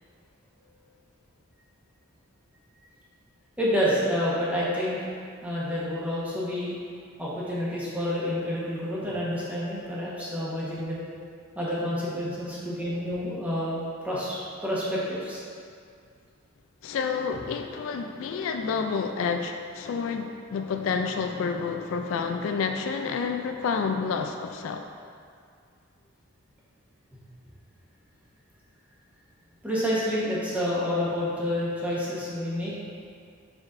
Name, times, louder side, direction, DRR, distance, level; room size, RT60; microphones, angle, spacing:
voice 1, 3.6-5.1 5.4-6.8 7.2-11.0 11.5-15.4 29.6-32.7, equal, 5° right, -8 dB, 1.2 m, -28 dB
voice 2, 16.8-24.9, left 5 dB, 65° left, 5 dB, 0.3 m, -29 dB
6.1 x 6.0 x 2.6 m, 2.2 s
head